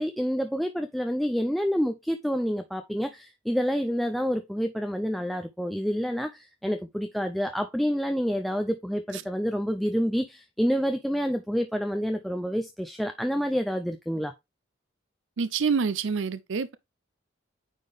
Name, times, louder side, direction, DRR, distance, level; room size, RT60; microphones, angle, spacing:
voice 1, 0.0-14.3, equal, ahead, 0.3 m, -28 dB
voice 2, 15.4-16.7, right 5 dB, 80° right, 0.5 m, -27 dB
9.2 x 3.7 x 3.4 m
head